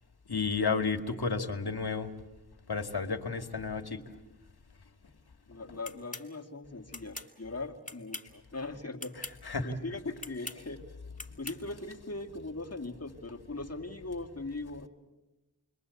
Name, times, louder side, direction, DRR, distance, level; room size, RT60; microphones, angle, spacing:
voice 1, 0.3-2.1 2.7-4.0 9.5-9.7, left 4 dB, 60° left, 5 dB, 2.3 m, -31 dB
voice 2, 5.5-9.1 9.6-10.8 11.4-14.9, left 2 dB, 35° left, 2 dB, 2.3 m, -40 dB
sound 1, 5.8-6.3 6.9-7.3 7.8-8.4 9.0-9.4 10.2-10.6 11.2-11.6, left 2 dB, 20° left, 2.9 m, -42 dB
29.0 x 22.5 x 8.4 m, 1.1 s
cardioid pair, 40°, 42 cm